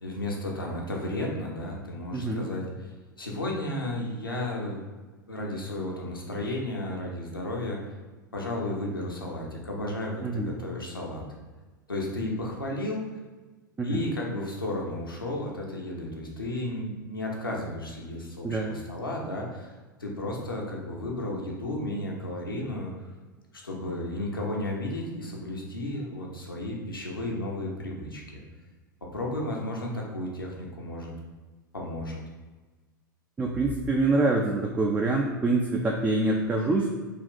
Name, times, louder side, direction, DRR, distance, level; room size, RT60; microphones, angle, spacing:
voice 1, 0.0-2.9 3.2-4.8 5.3-7.8 8.3-11.2 11.9-13.0 13.8-19.7 20.0-23.1 23.6-28.4 29.1-31.1 31.7-32.2, left 1 dB, 85° left, -2 dB, 0.7 m, -33 dB
voice 2, 2.1-2.4 10.2-10.5 13.8-14.0 18.4-18.7 33.4-36.9, right 2 dB, 15° right, 0 dB, 0.3 m, -25 dB
3.6 x 2.4 x 3.7 m, 1.3 s
figure-of-eight pair, 90°, 11 cm